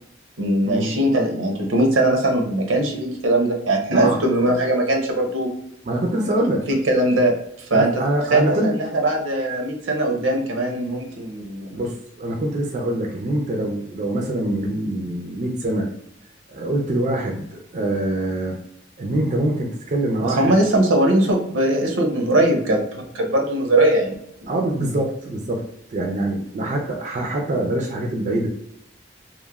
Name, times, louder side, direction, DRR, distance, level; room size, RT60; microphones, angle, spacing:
voice 1, 0.4-5.5 6.7-7.3 7.7-7.9 8.3-11.8 20.2-24.2 24.4-24.5, right 1 dB, 85° right, 2 dB, 0.6 m, -20 dB
voice 2, 3.9-4.3 5.8-6.7 7.7-8.7 11.7-15.9 16.5-18.6 19.0-20.5 24.5-25.6 25.9-28.5, right 1 dB, 40° right, 0 dB, 0.4 m, -24 dB
3.0 x 2.1 x 2.3 m, 0.72 s
head